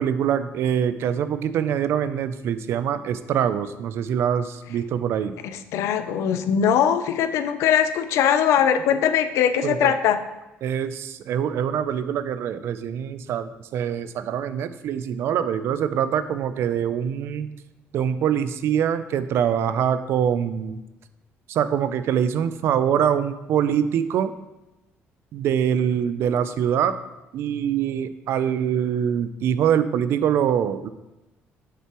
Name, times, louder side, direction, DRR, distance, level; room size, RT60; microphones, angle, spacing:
voice 1, 0.0-5.3 9.6-9.9 10.6-17.5 17.9-20.8 21.5-24.3 25.3-27.0 27.3-30.9, right 8 dB, 60° right, 12 dB, 0.4 m, -24 dB
voice 2, 5.4-10.2, left 8 dB, 75° left, 10 dB, 0.5 m, -21 dB
7.3 x 6.8 x 3.0 m, 0.99 s
cardioid pair, 160°, 5 cm